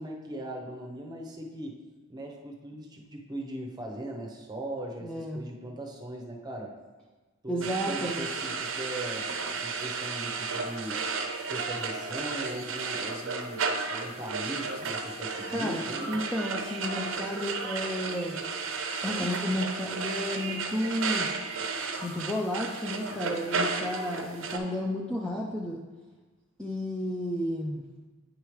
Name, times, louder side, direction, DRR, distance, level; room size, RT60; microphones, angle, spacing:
voice 1, 0.0-1.8 2.1-6.8 7.4-9.3 9.6-11.1 11.5-16.1, right 1 dB, 20° right, 0 dB, 0.7 m, -39 dB
voice 2, 5.0-5.4 7.5-8.3 15.5-18.4 19.0-21.3 22.0-25.8 26.6-27.8, equal, 5° left, -2 dB, 0.4 m, -32 dB
sound 1, 7.6-24.6, right 4 dB, 60° right, 0.6 m, -33 dB
9.0 x 4.9 x 3.1 m, 1.3 s
head